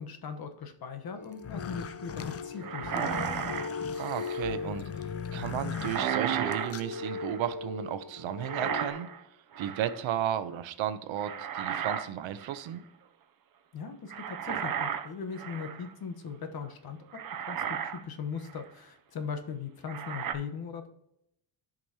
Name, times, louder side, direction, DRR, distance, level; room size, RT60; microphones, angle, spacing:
voice 1, 0.0-3.2 13.7-17.0 17.5-20.9, left 6 dB, 50° left, 7 dB, 1.2 m, -39 dB
sound 1, 1.0-8.9, left 4 dB, 85° left, 3.1 m, -39 dB
sound 2, 1.3-7.0, left 7 dB, 35° left, 0.5 m, -40 dB
sound 3, 2.6-4.6 5.7-7.5 8.4-9.2 9.5-10.0 11.2-12.1 12.4-12.7 14.1-15.9 16.6-16.7 17.1-18.0 18.5-18.6 19.9-20.3, right 8 dB, 45° right, 0.7 m, -34 dB
voice 2, 4.0-4.9 5.3-9.1 9.6-12.8, right 10 dB, 85° right, 12 dB, 0.9 m, -34 dB
14.5 x 5.3 x 2.8 m, 0.79 s
cardioid pair, 145°, 46 cm